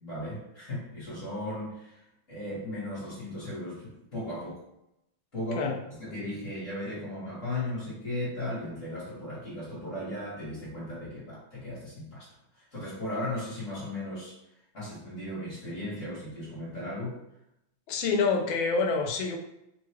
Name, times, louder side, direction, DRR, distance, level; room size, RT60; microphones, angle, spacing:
voice 1, 0.0-2.0 2.3-4.6 5.3-5.7 6.0-12.3 12.5-14.4 14.7-17.2, left 1 dB, 45° left, -8 dB, 1.3 m, -36 dB
voice 2, 17.9-19.4, left 4 dB, 80° left, 3 dB, 1.3 m, -27 dB
3.2 x 2.2 x 3.2 m, 0.84 s
omnidirectional pair, 2.3 m